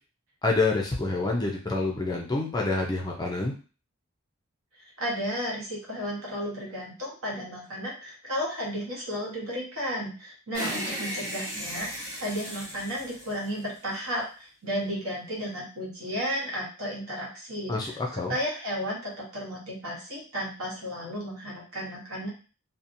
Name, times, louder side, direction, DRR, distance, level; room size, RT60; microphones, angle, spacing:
voice 1, 0.4-3.5 17.7-18.4, left 3 dB, 15° left, 0 dB, 0.4 m, -27 dB
voice 2, 4.8-22.3, equal, 75° right, -3 dB, 1.1 m, -33 dB
sound 1, 10.5-14.0, equal, 15° right, 1.0 m, -36 dB
2.7 x 2.1 x 2.6 m, 0.36 s
head